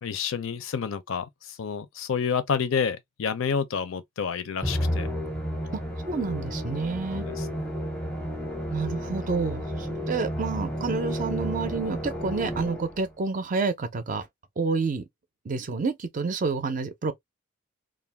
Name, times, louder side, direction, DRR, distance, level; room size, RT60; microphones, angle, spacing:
voice 1, 0.0-5.1 7.1-7.6, left 6 dB, 65° left, 0.4 m, -29 dB
Musical instrument, 4.6-13.1, equal, 5° left, 0.6 m, -32 dB
voice 2, 6.1-7.2 8.7-14.3 14.6-15.0 15.5-17.1, right 4 dB, 40° right, 0.5 m, -29 dB
2.4 x 2.1 x 3.2 m
head